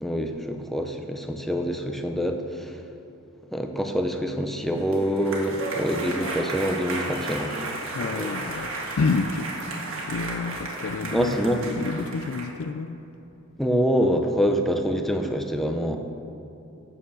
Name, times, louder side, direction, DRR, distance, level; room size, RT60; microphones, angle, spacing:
voice 1, 0.0-2.8 3.5-7.5 8.1-8.3 11.1-11.6 13.6-16.0, equal, ahead, 5 dB, 0.6 m, -25 dB
sound 1, 4.6-12.5, right 2 dB, 75° right, 1.6 m, -33 dB
voice 2, 7.9-13.0, left 4 dB, 75° left, 8 dB, 0.4 m, -29 dB
8.9 x 6.7 x 7.1 m, 2.9 s
head